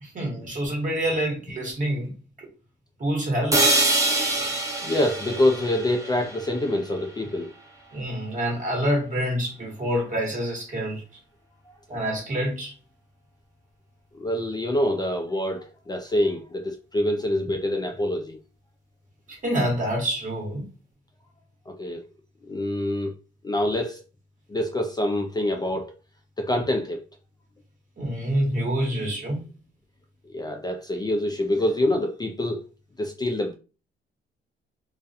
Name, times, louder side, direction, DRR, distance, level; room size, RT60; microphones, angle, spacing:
voice 1, 0.0-2.5 3.0-3.8 7.9-11.0 11.9-12.7 19.3-20.6 28.0-29.4, equal, 40° right, 1.2 m, -27 dB
sound 1, 3.5-7.5, right 2 dB, 15° right, 0.7 m, -25 dB
voice 2, 4.8-7.5 14.1-18.4 21.7-22.0 22.5-23.1 23.4-24.0 24.5-25.9 26.4-27.0 30.2-32.6 33.0-33.5, left 1 dB, 20° left, 0.4 m, -26 dB
2.4 x 2.2 x 2.6 m
cardioid pair, 90°, 20 cm